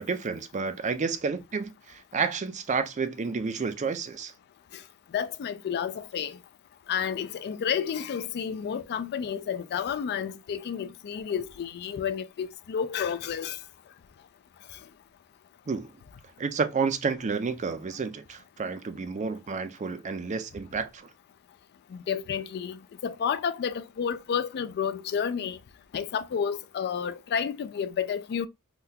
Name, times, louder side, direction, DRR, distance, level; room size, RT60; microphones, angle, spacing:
voice 1, 0.0-4.3 15.7-15.9 16.4-21.1, right 5 dB, 35° right, 0.4 m, -30 dB
voice 2, 5.1-6.4 6.9-13.6 21.9-25.6 25.9-28.5, left 7 dB, 50° left, 0.3 m, -31 dB
3.7 x 2.3 x 2.6 m
head